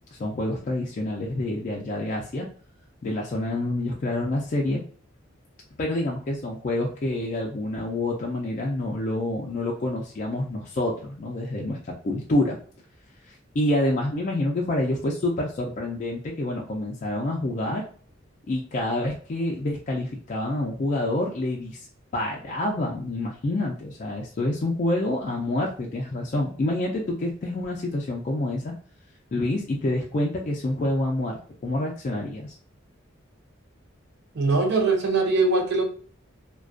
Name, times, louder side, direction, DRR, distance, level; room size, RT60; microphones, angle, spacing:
voice 1, 0.1-2.5 3.0-4.8 5.8-11.8 12.0-12.6 13.3-17.9 18.5-21.9 22.1-28.7 29.3-32.5, left 1 dB, 40° left, -2 dB, 0.3 m, -27 dB
voice 2, 34.3-35.8, right 3 dB, 60° right, 3 dB, 0.5 m, -21 dB
2.4 x 2.2 x 2.4 m, 0.44 s
head